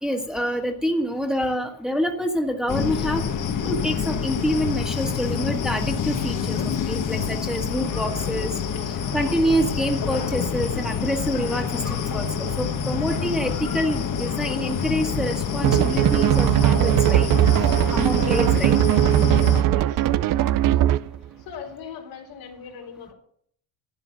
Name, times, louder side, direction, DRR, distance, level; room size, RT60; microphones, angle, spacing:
voice 1, 0.0-3.2 3.6-6.6 6.9-8.5 9.1-17.3 17.9-18.8, equal, ahead, 2 dB, 1.7 m, -26 dB
sound 1, 2.7-19.6, left 7 dB, 40° left, 1.3 m, -27 dB
sound 2, 15.6-21.2, right 13 dB, 45° right, 0.5 m, -19 dB
voice 2, 19.6-20.1 21.5-23.1, left 6 dB, 85° left, 1 dB, 4.0 m, -39 dB
12.0 x 8.8 x 5.9 m, 0.64 s
cardioid pair, 105°, 47 cm